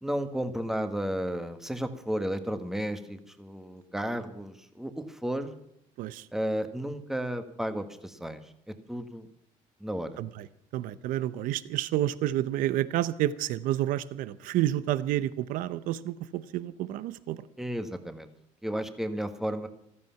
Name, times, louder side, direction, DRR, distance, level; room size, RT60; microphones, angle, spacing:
voice 1, 0.0-5.5 6.3-8.4 8.9-9.3 9.8-10.1 17.6-18.3 18.6-19.7, equal, 5° right, 8 dB, 1.4 m, -33 dB
voice 2, 10.7-17.4, right 13 dB, 75° right, 16 dB, 0.7 m, -29 dB
15.0 x 14.0 x 5.8 m, 0.74 s
cardioid pair, 120°, 14 cm